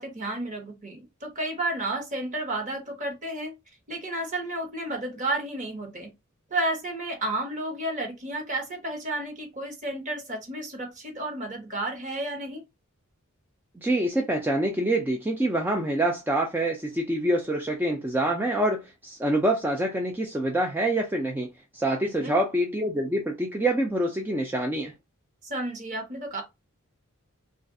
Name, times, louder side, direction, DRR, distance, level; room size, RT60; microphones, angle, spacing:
voice 1, 0.0-3.6 3.9-6.1 6.5-12.6 22.0-22.3 25.4-26.4, right 1 dB, 35° right, 1.0 m, -32 dB
voice 2, 13.8-24.9, right 1 dB, 10° right, 0.4 m, -26 dB
3.1 x 2.4 x 2.6 m
head